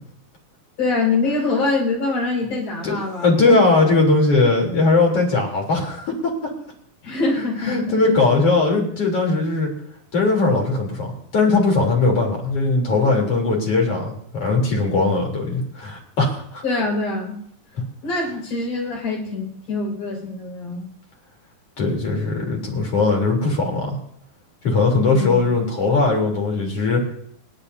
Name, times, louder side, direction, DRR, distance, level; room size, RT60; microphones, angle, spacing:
voice 1, 0.8-3.9 7.0-8.1 16.6-17.4 18.0-20.8 25.1-25.4, left 3 dB, 55° left, -2 dB, 6.5 m, -24 dB
voice 2, 3.2-6.5 7.4-9.7 10.1-16.6 21.8-24.0 24.6-27.1, left 3 dB, 40° left, 0 dB, 4.2 m, -19 dB
29.5 x 11.0 x 2.7 m, 0.67 s
omnidirectional pair, 4.2 m